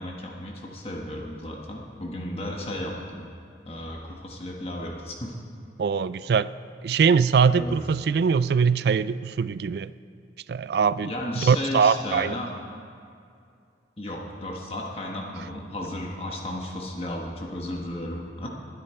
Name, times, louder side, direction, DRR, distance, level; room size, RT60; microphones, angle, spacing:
voice 1, 0.0-3.3 3.6-5.3 7.6-7.8 11.0-12.5 14.0-18.5, left 1 dB, 35° left, -1 dB, 1.3 m, -34 dB
voice 2, 5.8-6.5 6.8-9.9 10.5-12.4, right 6 dB, 60° right, 16 dB, 0.3 m, -22 dB
20.5 x 9.9 x 4.4 m, 2.4 s
head